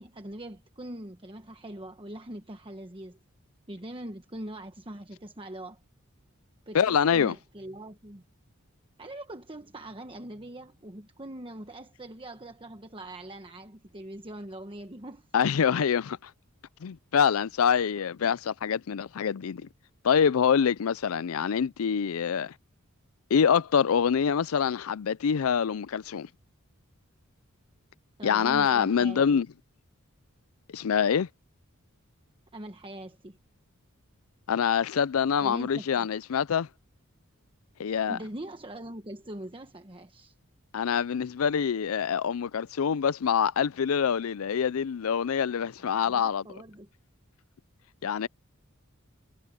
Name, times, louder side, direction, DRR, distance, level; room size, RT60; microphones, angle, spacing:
voice 1, 0.0-3.2 3.7-5.8 6.7-8.2 9.0-15.3 28.2-29.4 32.5-33.4 35.4-36.1 38.1-40.4 45.8-46.9, right 1 dB, 25° right, 1.2 m, -42 dB
voice 2, 6.7-7.3 15.3-16.3 16.8-19.7 20.0-22.5 23.3-26.3 28.2-29.5 30.7-31.3 34.5-36.7 37.8-38.2 40.7-46.4 48.0-48.3, left 7 dB, 80° left, 0.4 m, -25 dB
head